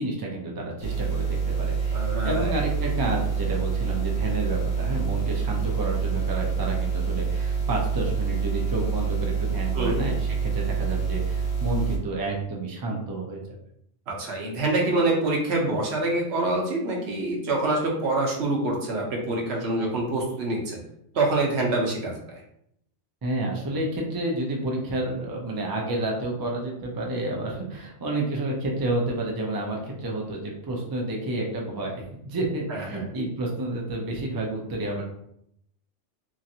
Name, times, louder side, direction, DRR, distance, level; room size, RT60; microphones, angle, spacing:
voice 1, 0.0-13.6 23.2-35.0, right 2 dB, 35° right, -1 dB, 0.3 m, -30 dB
sound 1, 0.8-12.0, right 6 dB, 55° left, 0.6 m, -27 dB
voice 2, 1.9-2.6 9.7-10.0 14.1-20.8 21.1-22.4 32.7-33.1, right 2 dB, 70° right, 0 dB, 1.0 m, -26 dB
3.0 x 2.5 x 2.7 m, 0.73 s
omnidirectional pair, 1.2 m